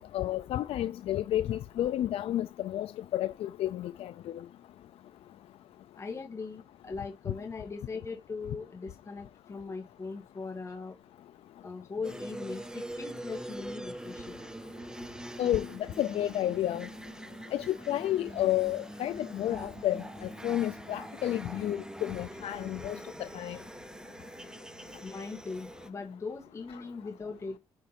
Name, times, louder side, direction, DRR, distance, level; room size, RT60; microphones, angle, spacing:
voice 1, 0.0-4.1 15.4-16.9 17.5-23.6, left 13 dB, 80° left, 0.4 m, -31 dB
voice 2, 6.0-11.0 11.6-14.4 25.0-27.6, left 4 dB, 30° left, 2.0 m, -40 dB
sound 1, 12.0-25.9, right 1 dB, 5° right, 0.7 m, -44 dB
10.5 x 5.1 x 4.4 m
cardioid pair, 120°, 10 cm